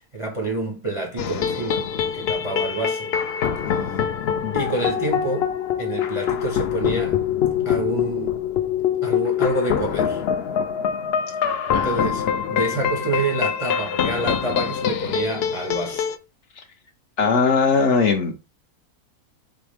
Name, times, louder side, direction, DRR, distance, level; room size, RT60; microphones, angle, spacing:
voice 1, 0.1-3.1 4.5-5.5 5.8-7.2 7.6-8.4 9.0-10.2 11.7-16.1, right 2 dB, 35° right, 0.5 m, -28 dB
sound 1, 1.2-16.2, left 8 dB, 90° left, 0.5 m, -24 dB
voice 2, 3.7-4.1 4.4-4.6 11.7-12.0 17.2-18.4, left 5 dB, 65° left, 0.8 m, -21 dB
4.2 x 3.5 x 3.3 m
omnidirectional pair, 1.6 m